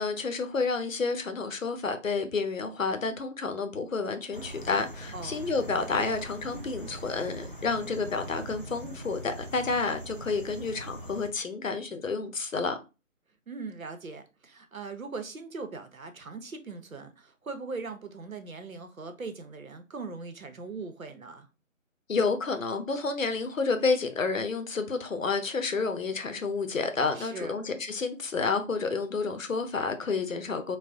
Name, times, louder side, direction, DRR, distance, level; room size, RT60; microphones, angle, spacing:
voice 1, 0.0-12.8 22.1-30.8, left 4 dB, 70° left, 0.7 m, -30 dB
sound 1, 4.3-11.3, right 1 dB, 40° right, 0.4 m, -42 dB
voice 2, 13.5-21.5 27.1-27.5, right 4 dB, 80° right, 0.8 m, -40 dB
4.0 x 2.1 x 2.4 m
figure-of-eight pair, 155°, 40 cm